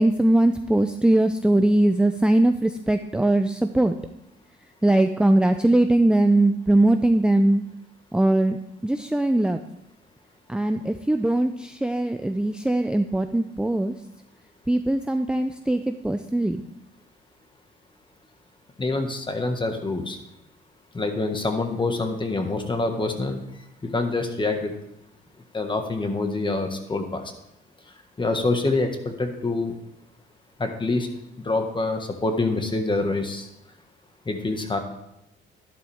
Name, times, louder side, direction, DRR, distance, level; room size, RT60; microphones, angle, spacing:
voice 1, 0.0-4.0 4.8-7.6 8.1-8.6 8.8-9.6 10.5-13.9 14.7-16.6, right 1 dB, 5° right, 7 dB, 0.5 m, -21 dB
voice 2, 18.8-20.2 20.9-23.4 23.9-24.7 25.5-27.3 28.2-29.7 30.6-31.1 31.4-33.5 34.2-34.8, left 3 dB, 25° left, 5 dB, 1.7 m, -26 dB
11.5 x 11.0 x 3.6 m, 0.85 s
cardioid pair, 90°, 20 cm